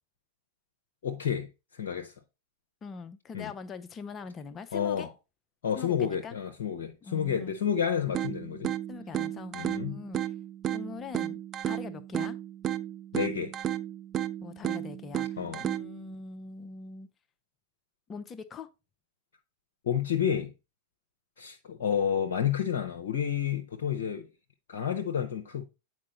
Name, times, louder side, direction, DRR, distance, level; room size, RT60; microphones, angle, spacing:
voice 1, 1.0-1.5 1.7-2.1 3.3-3.5 4.7-5.1 5.6-8.7 9.5-10.0 13.1-13.5 15.4-15.6 19.8-20.5 21.4-24.3 24.7-25.6, left 8 dB, 60° left, 0.7 m, -30 dB
voice 2, 2.8-5.1 5.8-6.4 7.0-7.5 8.9-10.2 10.7-11.4 11.6-12.4 14.4-17.1 18.1-18.7, left 4 dB, 25° left, 0.6 m, -42 dB
sound 1, 8.1-16.1, right 11 dB, 30° right, 0.4 m, -34 dB
8.6 x 4.5 x 3.0 m
figure-of-eight pair, 90°, 0 cm